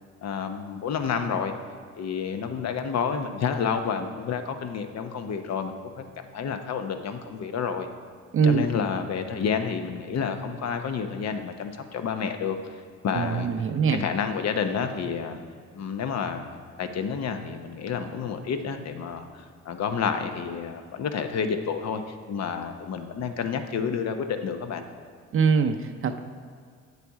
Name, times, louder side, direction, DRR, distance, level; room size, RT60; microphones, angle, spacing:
voice 1, 0.2-1.5 2.0-6.0 6.3-7.9 8.4-12.6 13.0-13.5 13.9-15.4 15.7-22.0 22.3-24.8, left 6 dB, 60° left, 7 dB, 0.8 m, -29 dB
voice 2, 8.3-8.7 13.1-14.0 25.3-26.2, right 5 dB, 45° right, 7 dB, 0.6 m, -23 dB
8.5 x 6.8 x 4.8 m, 2.2 s
cardioid pair, 90°, 30 cm